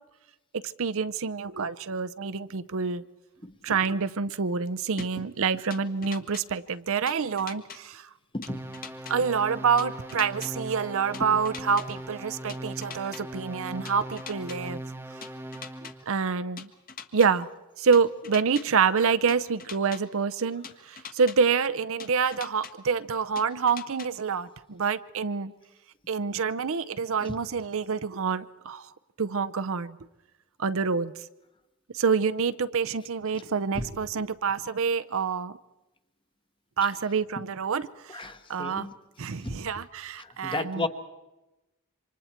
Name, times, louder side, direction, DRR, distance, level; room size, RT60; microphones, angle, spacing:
voice 1, 0.6-3.0 3.6-8.1 9.1-14.8 16.1-16.7 17.1-17.5 17.8-25.5 26.1-28.9 29.2-30.0 30.6-31.1 31.9-35.6 36.8-38.9 39.2-40.9, right 5 dB, 65° right, 0.6 m, -27 dB
sound 1, 5.0-5.1 5.7-6.4 7.1-7.8 8.4-9.1 9.8-10.5 11.1-11.9 12.5-13.2 13.8-14.6 15.2-15.9 16.6-17.3 17.9-18.6 19.3-20.0 20.6-21.4 22.0-22.7 23.4-24.1, left 6 dB, 40° left, 1.4 m, -41 dB
voice 2, 8.3-8.8 11.3-11.4 27.2-27.4 33.7-33.9 38.1-38.9 39.4-39.6 40.2-40.9, left 2 dB, 25° left, 1.1 m, -34 dB
sound 2, 8.5-16.0, right 1 dB, 10° right, 0.9 m, -40 dB
27.5 x 25.0 x 4.4 m
head